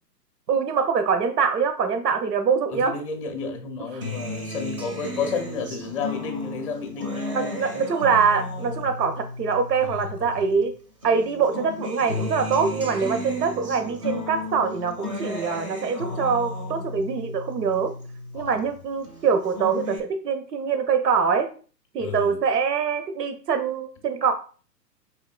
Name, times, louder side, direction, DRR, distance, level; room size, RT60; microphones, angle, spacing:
voice 1, 0.5-2.9 3.9-4.0 7.3-10.7 11.0-17.9 18.3-21.5 21.9-24.3, right 6 dB, 75° right, 7 dB, 0.7 m, -24 dB
voice 2, 2.7-7.9 8.6-8.8 9.8-10.1 18.3-18.6 22.0-22.4, left 4 dB, 20° left, 5 dB, 0.6 m, -32 dB
Acoustic guitar, 4.0-10.7 11.0-18.6 19.0-20.0, left 2 dB, 20° right, 0.5 m, -34 dB
5.2 x 3.5 x 2.2 m, 0.39 s
figure-of-eight pair, 125°, 49 cm